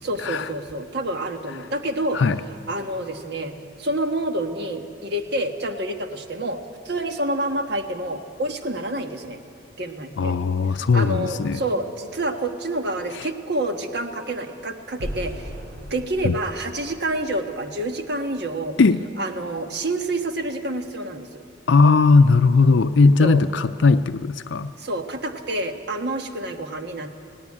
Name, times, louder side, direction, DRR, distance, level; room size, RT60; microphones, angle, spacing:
voice 1, 0.0-2.2 2.7-9.4 9.8-10.4 10.7-15.5 15.9-18.8 19.2-21.4 23.2-23.4 24.8-27.1, right 1 dB, 55° right, 6 dB, 1.4 m, -28 dB
voice 2, 10.2-11.6 13.1-13.3 16.2-16.3 18.8-19.0 21.7-24.7, left 4 dB, 65° left, 11 dB, 0.5 m, -18 dB
sound 1, 15.0-18.0, equal, 85° right, 6.8 m, -37 dB
18.5 x 17.0 x 9.8 m, 2.4 s
head